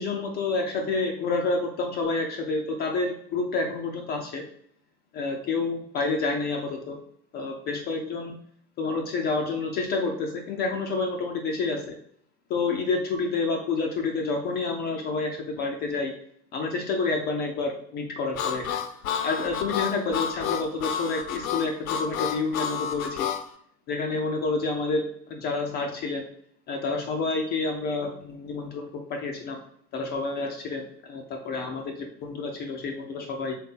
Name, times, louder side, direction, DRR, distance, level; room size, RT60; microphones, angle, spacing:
voice 1, 0.0-4.4 5.1-7.0 7.3-8.4 8.8-12.0 12.5-16.1 16.5-18.7 19.2-23.3 23.9-26.3 26.7-29.6 29.9-33.5, left 3 dB, 20° left, 2 dB, 0.4 m, -29 dB
Harmonica, 18.3-23.4, left 8 dB, 55° left, 0.7 m, -30 dB
3.7 x 3.4 x 4.2 m, 0.65 s
figure-of-eight pair, 80°, 48 cm